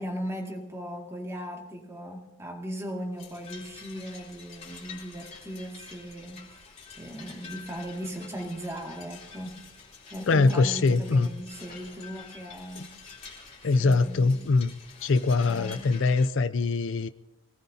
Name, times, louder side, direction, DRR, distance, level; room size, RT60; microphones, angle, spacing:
voice 1, 0.0-6.6 7.0-9.7 10.1-13.0 13.8-14.5 15.5-16.0, equal, 15° right, 1 dB, 2.1 m, -38 dB
sound 1, 3.2-16.3, left 5 dB, 30° left, 3.5 m, -48 dB
voice 2, 10.3-11.3 12.8-12.9 13.6-14.7 15.0-17.1, left 3 dB, 60° left, 13 dB, 0.4 m, -23 dB
24.5 x 18.5 x 2.8 m, 0.92 s
head